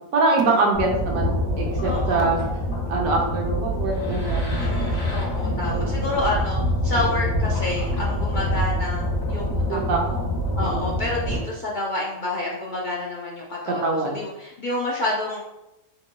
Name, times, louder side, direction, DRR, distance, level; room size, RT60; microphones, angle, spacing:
voice 1, 0.1-2.4 2.9-4.5 5.6-5.9 9.7-10.0 10.6-10.9 13.8-14.2, right 3 dB, 90° right, 0 dB, 1.2 m, -24 dB
sound 1, 0.7-11.4, left 1 dB, 80° left, 2.0 m, -25 dB
voice 2, 1.8-2.4 4.5-10.2 10.5-15.4, left 2 dB, 55° left, -4 dB, 0.5 m, -29 dB
4.1 x 3.8 x 2.2 m, 0.91 s
omnidirectional pair, 1.4 m